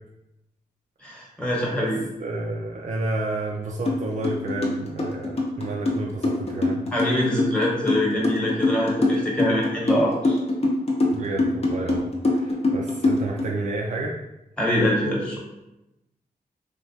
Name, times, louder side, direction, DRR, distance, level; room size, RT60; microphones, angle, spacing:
voice 1, 1.0-2.0 6.9-10.4 14.6-15.4, left 1 dB, 5° left, -4 dB, 1.0 m, -24 dB
voice 2, 2.2-6.9 11.1-14.2, right 2 dB, 50° right, -2 dB, 0.4 m, -30 dB
sound 1, 3.9-4.0 4.2-13.4, left 2 dB, 40° left, 0.7 m, -23 dB
3.1 x 2.2 x 2.6 m, 0.92 s
cardioid pair, 75°, 16 cm